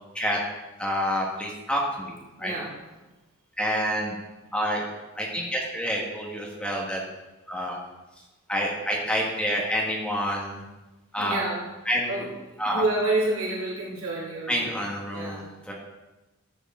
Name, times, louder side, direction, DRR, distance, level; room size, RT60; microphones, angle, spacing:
voice 1, 0.8-2.1 2.4-2.5 3.6-4.2 4.5-4.8 5.1-7.0 7.5-7.8 8.5-10.6 11.1-11.4 11.9-12.1 12.6-12.8 14.5-15.7, equal, 5° left, -3 dB, 1.6 m, -28 dB
voice 2, 2.4-2.8 11.2-11.7 12.1-12.4 12.6-14.7 15.1-15.4, right 2 dB, 75° right, -5 dB, 3.0 m, -28 dB
13.0 x 8.4 x 3.8 m, 1.1 s
head